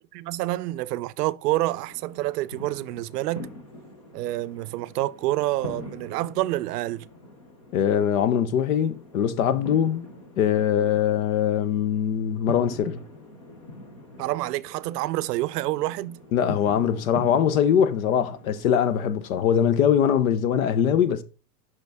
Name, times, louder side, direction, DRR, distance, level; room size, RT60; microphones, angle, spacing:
voice 1, 0.1-3.5 4.1-7.1 14.2-16.2, right 17 dB, 75° right, 0.6 m, -28 dB
sound 1, 1.8-19.6, left 1 dB, 25° left, 0.4 m, -43 dB
voice 2, 7.7-10.1 10.4-13.0 16.3-21.2, left 8 dB, 60° left, 0.8 m, -22 dB
6.5 x 5.5 x 3.4 m
supercardioid pair, 180°, 48 cm